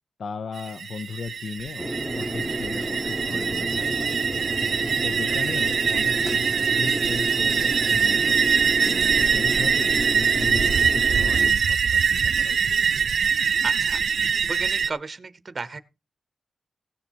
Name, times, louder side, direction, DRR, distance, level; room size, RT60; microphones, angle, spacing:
voice 1, 0.2-1.9 2.2-4.2 5.0-8.5 8.8-12.8, left 5 dB, 65° left, 0.6 m, -36 dB
sound 1, 0.6-14.9, right 6 dB, 70° right, 0.5 m, -23 dB
sound 2, 1.8-11.5, equal, 5° left, 0.9 m, -31 dB
sound 3, 6.2-6.5 8.8-9.2, left 1 dB, 25° left, 1.6 m, -41 dB
voice 2, 13.6-15.8, right 4 dB, 35° right, 0.8 m, -34 dB
16.5 x 7.1 x 4.5 m
wide cardioid pair, 150°, 0 cm